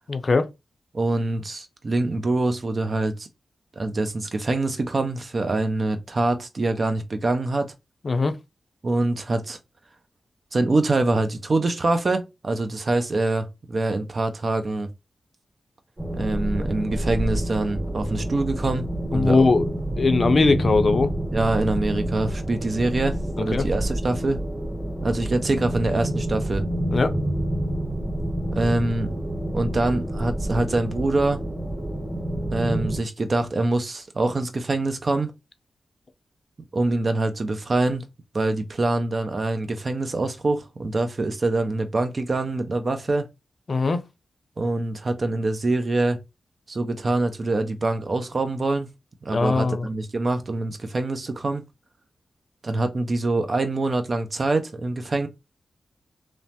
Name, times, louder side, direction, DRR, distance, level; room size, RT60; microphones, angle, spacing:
voice 1, 0.1-0.5 8.0-8.4 19.1-19.7 20.0-21.1 23.4-23.7 26.9-27.2 43.7-44.0 49.3-49.9, left 3 dB, 55° left, 0.4 m, -20 dB
voice 2, 0.9-3.3 3.8-7.7 8.8-9.6 10.5-14.9 16.1-19.5 21.3-24.4 25.0-26.6 28.5-29.2 29.5-31.4 32.5-35.3 36.7-38.1 38.3-43.3 44.6-46.2 46.7-48.9 49.2-51.6 52.6-55.3, right 2 dB, 50° right, 0.5 m, -25 dB
sound 1, 16.0-33.0, right 1 dB, 35° right, 1.9 m, -28 dB
3.1 x 2.0 x 2.8 m
cardioid pair, 50°, 0 cm